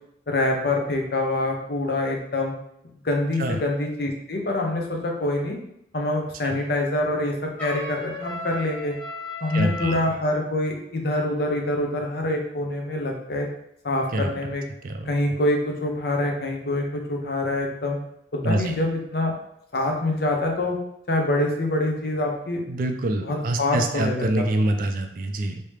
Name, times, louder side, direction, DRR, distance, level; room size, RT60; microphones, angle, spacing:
voice 1, 0.3-2.5 3.0-5.6 5.9-8.9 9.4-13.5 13.8-14.6 15.0-18.0 18.3-19.3 19.7-20.8 21.1-22.6 23.2-24.4, left 2 dB, 55° left, 1 dB, 0.6 m, -25 dB
Trumpet, 7.6-10.1, left 1 dB, 10° left, 1.2 m, -35 dB
voice 2, 9.5-10.0 14.1-14.3 14.8-15.1 18.4-18.8 22.7-25.6, right 1 dB, 50° right, 5 dB, 0.4 m, -25 dB
3.3 x 2.8 x 3.1 m, 0.79 s
head